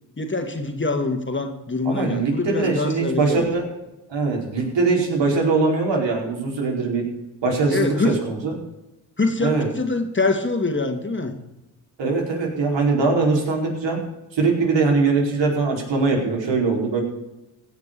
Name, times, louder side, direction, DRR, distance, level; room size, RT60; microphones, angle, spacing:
voice 1, 0.2-3.5 7.7-8.2 9.2-11.3, left 3 dB, 25° left, 5 dB, 2.4 m, -24 dB
voice 2, 1.8-3.7 4.1-7.0 7.4-8.5 9.4-9.7 12.0-14.0 14.3-17.0, right 3 dB, 70° right, 0 dB, 4.8 m, -21 dB
16.5 x 6.6 x 6.9 m, 0.96 s
cardioid pair, 70°, 45 cm